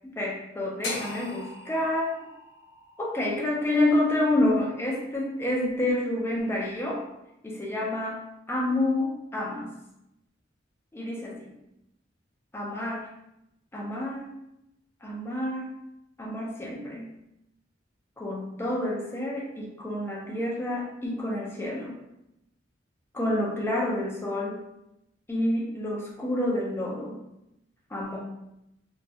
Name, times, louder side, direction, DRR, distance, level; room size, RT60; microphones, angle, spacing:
voice 1, 0.2-2.1 3.0-7.0 7.4-9.7 10.9-11.5 12.5-13.1 13.7-14.3 15.0-15.7 16.2-17.1 18.2-22.0 23.1-24.6 25.3-27.2 27.9-28.2, left 1 dB, 15° left, -3 dB, 0.4 m, -28 dB
sound 1, 0.8-5.0, left 2 dB, 75° left, 0.5 m, -40 dB
2.2 x 2.0 x 2.7 m, 0.87 s
head